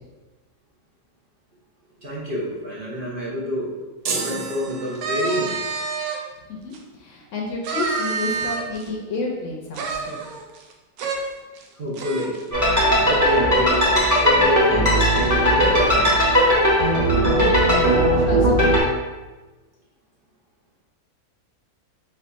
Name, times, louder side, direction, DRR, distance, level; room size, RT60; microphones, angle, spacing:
voice 1, 2.0-3.7 4.1-5.6 11.7-12.4 12.9-16.2, equal, 40° right, -6 dB, 1.1 m, -28 dB
sound 1, 4.1-5.6, right 5 dB, 65° right, 0.8 m, -30 dB
sound 2, 4.9-6.2 6.7-6.8 7.6-8.9 9.7-10.7 11.0-11.2 11.6-11.7 11.9-12.4, right 4 dB, 85° right, 1.1 m, -28 dB
voice 2, 6.5-10.2 17.4-18.7, left 2 dB, 65° left, -1 dB, 1.0 m, -30 dB
sound 3, 12.5-18.8, equal, 15° right, 0.9 m, -18 dB
4.3 x 2.8 x 3.9 m, 1.2 s
omnidirectional pair, 1.5 m